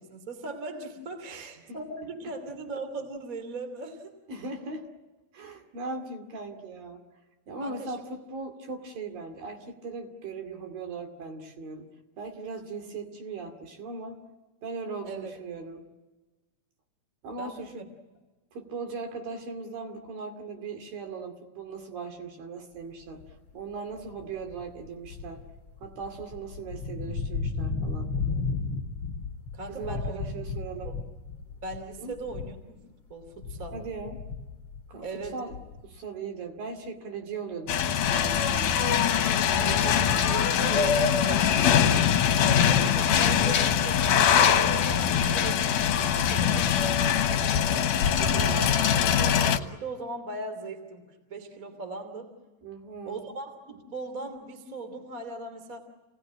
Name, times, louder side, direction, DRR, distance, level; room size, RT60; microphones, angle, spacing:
voice 1, 0.0-4.1 7.6-8.0 15.0-15.3 17.4-17.8 29.5-30.3 30.8-30.9 31.6-32.8 33.1-33.8 35.0-35.4 39.4-40.0 42.6-47.8 48.2-52.3 53.0-55.8, right 2 dB, 25° right, 6 dB, 2.8 m, -39 dB
voice 2, 1.3-1.8 4.3-4.9 5.3-7.0 7.5-11.9 12.2-14.2 14.6-15.8 17.2-17.9 18.5-23.2 23.5-25.4 25.8-28.1 29.7-30.9 32.0-32.1 33.7-34.2 34.9-35.0 35.3-35.5 35.8-38.8 39.6-42.9 48.2-48.7 52.6-53.2, right 4 dB, 65° right, 5 dB, 4.2 m, -39 dB
sound 1, 23.2-23.5 24.0-32.8 33.1-36.0, left 4 dB, 35° left, 3.0 m, -34 dB
sound 2, 37.7-49.6, left 8 dB, 65° left, 2.5 m, -23 dB
29.5 x 19.5 x 9.9 m, 1.2 s
omnidirectional pair, 4.4 m